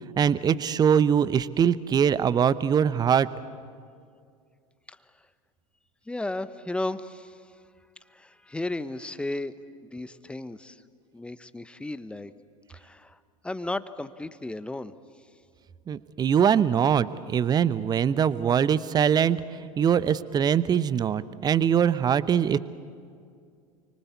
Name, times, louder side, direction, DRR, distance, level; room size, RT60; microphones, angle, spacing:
voice 1, 0.2-3.3 15.9-19.4 19.8-22.6, right 8 dB, 20° right, 17 dB, 0.8 m, -22 dB
voice 2, 4.9-5.3 6.0-7.6 8.0-9.5 9.8-10.8 11.1-12.3 12.7-14.9 15.2-15.3, left 2 dB, 5° left, 14 dB, 1.0 m, -35 dB
29.5 x 24.0 x 8.4 m, 2.2 s
figure-of-eight pair, 85°, 18 cm